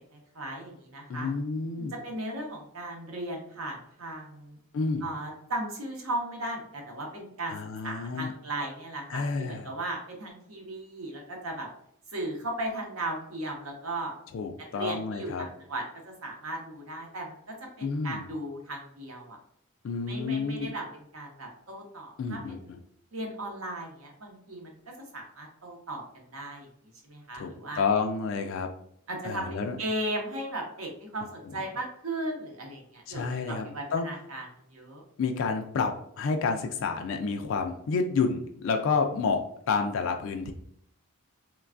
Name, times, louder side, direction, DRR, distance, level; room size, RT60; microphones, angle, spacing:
voice 1, 0.1-1.3 1.8-4.6 5.0-7.5 7.8-11.7 12.1-14.1 14.7-17.4 17.8-19.4 20.1-22.7 23.1-24.8 25.1-26.0 26.3-26.7 27.0-27.8 29.1-34.4 34.7-35.0, right 1 dB, 75° right, 0 dB, 0.7 m, -36 dB
voice 2, 1.1-1.9 4.7-5.1 7.5-8.3 9.1-9.7 14.3-15.5 17.8-18.3 19.8-20.7 22.2-22.8 27.3-27.5 27.8-28.7 29.2-29.8 31.5-31.6 33.1-33.7 33.9-34.1 35.2-39.4 39.7-40.5, left 4 dB, 60° left, 4 dB, 0.3 m, -29 dB
3.2 x 2.2 x 2.4 m, 0.71 s
head